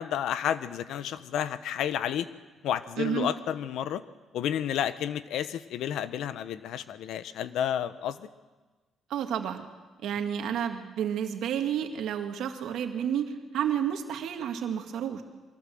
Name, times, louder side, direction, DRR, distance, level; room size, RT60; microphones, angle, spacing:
voice 1, 0.0-2.3 2.6-4.0 4.3-8.3, left 10 dB, 80° left, 14 dB, 1.0 m, -31 dB
voice 2, 3.0-3.3 9.1-9.6 10.0-15.2, right 9 dB, 80° right, 5 dB, 2.0 m, -30 dB
23.0 x 16.5 x 7.8 m, 1.3 s
cardioid pair, 90°, 0 cm